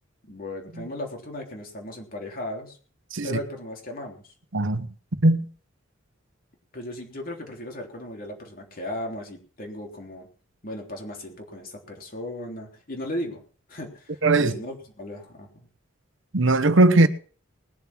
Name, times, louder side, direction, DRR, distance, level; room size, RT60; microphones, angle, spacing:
voice 1, 0.2-2.8 3.2-4.3 6.7-10.3 10.6-13.4 13.7-15.7, left 1 dB, 50° left, 3.5 m, -36 dB
voice 2, 4.5-4.9 5.2-5.5 14.2-14.6 16.3-17.1, right 2 dB, 70° right, 1.0 m, -19 dB
20.5 x 7.2 x 6.1 m
head